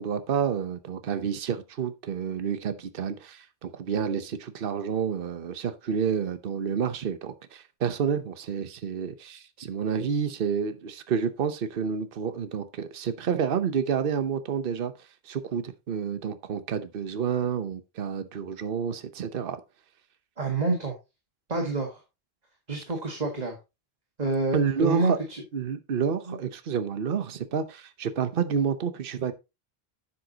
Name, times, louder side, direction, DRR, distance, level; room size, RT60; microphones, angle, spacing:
voice 1, 0.0-19.6 24.5-25.2 25.5-29.3, right 7 dB, 60° right, 1.0 m, -29 dB
voice 2, 20.4-21.0 21.5-22.0 22.7-23.6 24.2-25.4 26.3-26.4, right 3 dB, 40° right, 1.7 m, -27 dB
10.5 x 7.6 x 2.8 m
omnidirectional pair, 1.1 m